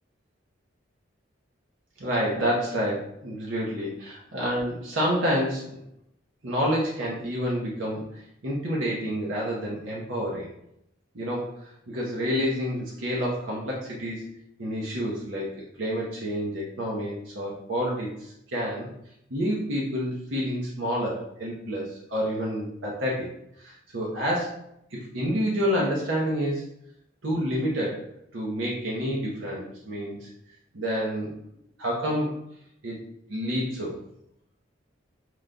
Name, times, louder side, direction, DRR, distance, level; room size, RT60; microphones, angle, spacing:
voice 1, 2.0-5.8 6.4-8.0 8.4-10.5 11.1-11.5 11.9-14.3 14.6-18.9 19.3-23.3 23.6-24.6 24.9-26.6 27.2-28.0 28.3-30.3 30.7-31.3 31.8-32.3 32.8-33.0 33.3-33.9, equal, 80° right, -4 dB, 0.8 m, -28 dB
4.8 x 2.2 x 3.8 m, 0.77 s
head